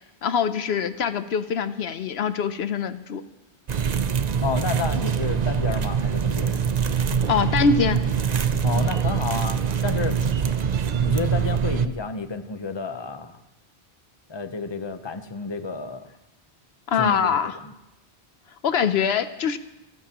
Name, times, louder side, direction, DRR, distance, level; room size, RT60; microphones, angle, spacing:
voice 1, 0.2-3.2 7.3-8.0 16.9-17.6 18.6-19.6, left 6 dB, 75° left, 11 dB, 0.9 m, -23 dB
sound 1, 3.7-11.9, right 7 dB, 45° right, 0.7 m, -24 dB
voice 2, 4.4-6.6 8.6-10.4 11.0-13.4 14.3-16.0 17.0-17.7, left 4 dB, 25° left, 8 dB, 0.9 m, -31 dB
28.5 x 14.0 x 3.0 m, 0.94 s
omnidirectional pair, 1.1 m